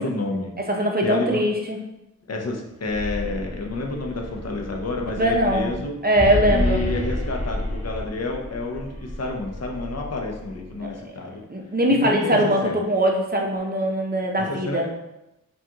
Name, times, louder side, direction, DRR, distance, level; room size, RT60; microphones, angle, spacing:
voice 1, 0.0-0.5 1.0-1.4 2.3-6.0 6.5-11.4 11.9-12.8 14.4-14.9, left 2 dB, 50° left, 2 dB, 0.7 m, -29 dB
voice 2, 0.7-1.8 5.2-6.8 10.8-11.1 11.5-14.9, equal, 30° right, 1 dB, 0.7 m, -22 dB
sound 1, 2.7-10.8, left 1 dB, 20° left, 1.1 m, -31 dB
5.0 x 2.4 x 2.9 m, 0.91 s
wide cardioid pair, 80°, 33 cm